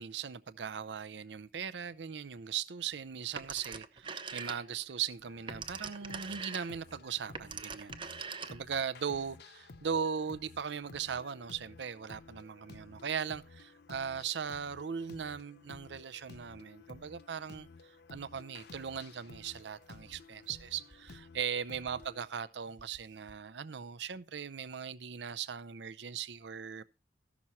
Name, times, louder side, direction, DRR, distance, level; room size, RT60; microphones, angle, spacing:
voice 1, 0.0-8.0 8.3-26.8, right 7 dB, 70° right, 0.6 m, -39 dB
Telephone, 3.4-4.9 5.3-8.8, right 5 dB, 30° right, 0.7 m, -43 dB
sound 1, 5.2-22.2, left 3 dB, 65° left, 0.7 m, -54 dB
sound 2, 19.6-21.4 21.7-22.4 22.6-23.6, equal, 45° right, 1.2 m, -63 dB
14.0 x 6.1 x 4.2 m
head